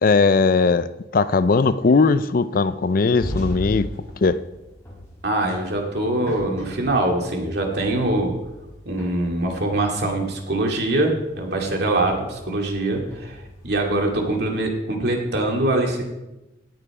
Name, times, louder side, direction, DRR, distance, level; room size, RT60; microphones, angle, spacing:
voice 1, 0.0-3.9 4.2-4.4, left 4 dB, 50° left, 14 dB, 0.4 m, -19 dB
sound 1, 3.2-14.5, equal, 15° left, 4.4 m, -39 dB
voice 2, 5.2-8.3 8.9-16.0, right 2 dB, 60° right, 1 dB, 2.3 m, -23 dB
17.5 x 6.9 x 4.9 m, 0.99 s
head